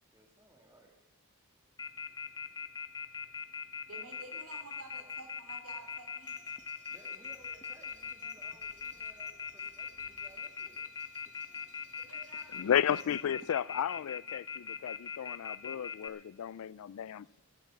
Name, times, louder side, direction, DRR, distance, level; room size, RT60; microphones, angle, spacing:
voice 1, 0.1-1.0 2.5-2.9 6.9-10.9, right 2 dB, 15° right, 2.0 m, -60 dB
Telephone, 1.8-16.1, left 6 dB, 20° left, 0.6 m, -40 dB
voice 2, 3.8-6.4 11.9-12.7, right 2 dB, 75° right, 3.0 m, -51 dB
sound 1, 5.7-13.5, right 3 dB, 35° right, 2.4 m, -63 dB
voice 3, 12.6-17.4, left 9 dB, 75° left, 0.3 m, -33 dB
14.5 x 8.3 x 8.5 m
head